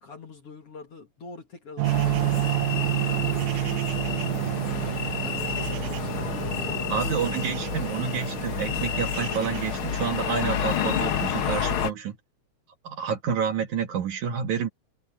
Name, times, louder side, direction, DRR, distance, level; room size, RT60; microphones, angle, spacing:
voice 1, 0.0-3.5 4.3-7.5, left 4 dB, 45° left, 2.4 m, -45 dB
sound 1, 1.8-11.9, left 9 dB, 75° left, 1.2 m, -30 dB
sound 2, 1.8-10.9, right 19 dB, 90° right, 1.8 m, -30 dB
voice 2, 6.9-12.2 12.8-14.7, right 7 dB, 60° right, 2.6 m, -29 dB
omnidirectional pair, 4.3 m